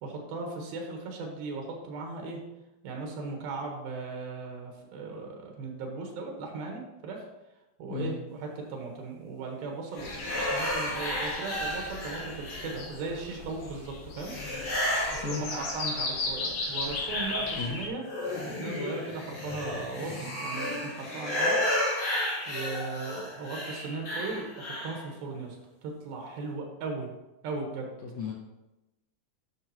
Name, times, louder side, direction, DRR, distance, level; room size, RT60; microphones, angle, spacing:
voice 1, 0.0-2.4 2.8-7.3 7.8-14.3 15.1-18.0 18.6-21.6 22.5-25.6 25.8-27.1 27.4-27.9, right 3 dB, 90° right, 1 dB, 3.1 m, -37 dB
sound 1, 10.0-17.9, left 3 dB, 70° left, 2.9 m, -37 dB
sound 2, 10.0-13.1 14.2-16.2 16.6-25.0, left 1 dB, 45° left, 3.7 m, -33 dB
voice 2, 28.0-28.3, left 5 dB, 85° left, -1 dB, 1.5 m, -33 dB
11.0 x 6.1 x 2.9 m, 0.97 s
omnidirectional pair, 4.2 m